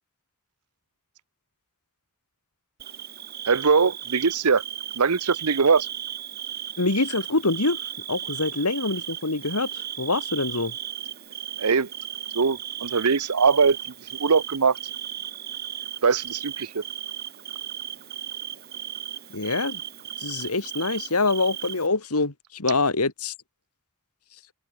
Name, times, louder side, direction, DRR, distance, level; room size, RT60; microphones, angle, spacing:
Bird / Cricket, 2.8-21.9, right 10 dB, 45° right, 1.5 m, -36 dB
voice 1, 3.5-4.6 5.0-5.9 11.6-11.9 12.3-13.8 14.2-14.8 16.0-16.8, right 5 dB, 85° right, 0.9 m, -21 dB
voice 2, 6.8-7.8 8.1-10.7 19.3-19.8 20.2-23.3, left 3 dB, 80° left, 2.4 m, -25 dB
open air
head